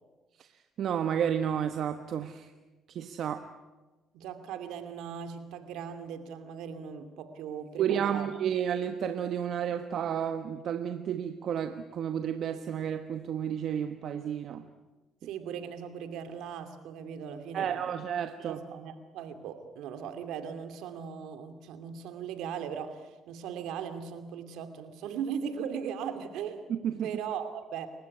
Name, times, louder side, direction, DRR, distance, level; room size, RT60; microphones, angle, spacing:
voice 1, 0.8-2.5 2.9-3.4 7.8-14.7 17.5-18.6 26.7-27.1, right 9 dB, 65° right, 8 dB, 1.3 m, -31 dB
voice 2, 4.1-8.3 15.2-18.0 18.4-26.7 27.0-27.9, right 7 dB, 80° right, 8 dB, 2.6 m, -38 dB
28.5 x 15.5 x 9.8 m, 1.2 s
supercardioid pair, 75°, 0 cm